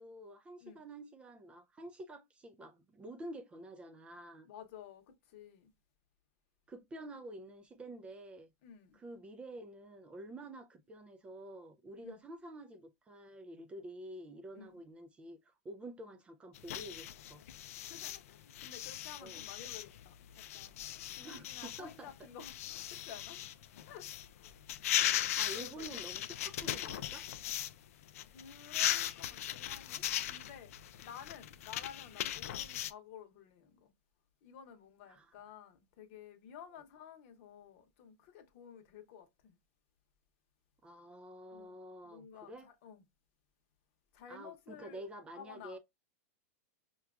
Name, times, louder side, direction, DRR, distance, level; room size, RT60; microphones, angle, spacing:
voice 1, 0.0-4.5 6.7-8.5 8.9-17.4 19.2-19.4 21.2-22.1 25.1-27.3 35.1-35.3 40.8-42.7 44.3-45.8, right 1 dB, 15° right, 0.4 m, -49 dB
voice 2, 4.5-5.7 8.6-9.0 12.0-12.2 14.5-14.7 17.8-24.1 24.3-24.6 25.5-26.1 28.2-33.9 34.4-39.6 41.5-41.7 42.0-43.0 44.1-45.0 45.4-45.8, left 8 dB, 50° left, 0.9 m, -53 dB
sound 1, 16.5-27.7 28.0-32.9, left 12 dB, 70° left, 0.4 m, -38 dB
5.6 x 2.3 x 2.3 m
supercardioid pair, 150°, 8 cm